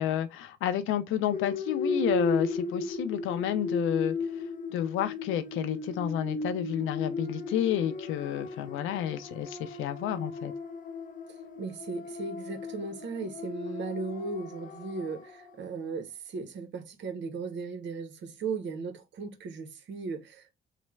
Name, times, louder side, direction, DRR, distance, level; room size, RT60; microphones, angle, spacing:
voice 1, 0.0-4.2 4.7-10.5, left 10 dB, 85° left, 0.4 m, -30 dB
sound 1, 1.3-15.5, left 3 dB, 40° left, 0.6 m, -35 dB
voice 2, 11.6-20.5, right 4 dB, 65° right, 0.7 m, -37 dB
3.2 x 2.0 x 3.2 m
cardioid pair, 90°, 20 cm